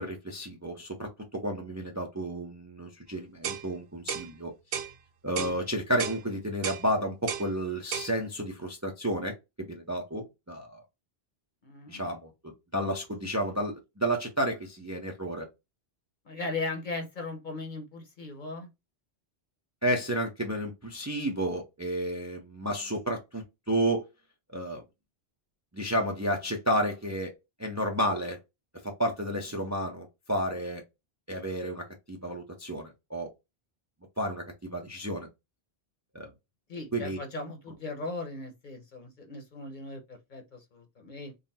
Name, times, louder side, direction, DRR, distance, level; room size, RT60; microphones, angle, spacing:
voice 1, 0.0-4.5 5.2-10.8 11.9-15.5 19.8-24.0 24.5-24.8 25.7-27.3 27.6-28.4 28.8-30.8 31.3-33.3 34.2-35.3 36.1-36.3 36.9-37.2, right 1 dB, 20° right, 0.5 m, -31 dB
sound 1, 3.4-3.7 4.1-4.3 4.7-4.9 5.4-5.6 6.0-6.2 6.6-6.8 7.3-7.5 7.9-8.1, right 7 dB, 75° right, 0.9 m, -33 dB
voice 2, 11.6-12.1 16.2-18.7 36.7-41.3, left 3 dB, 50° left, 1.0 m, -38 dB
3.8 x 2.0 x 4.1 m
omnidirectional pair, 1.1 m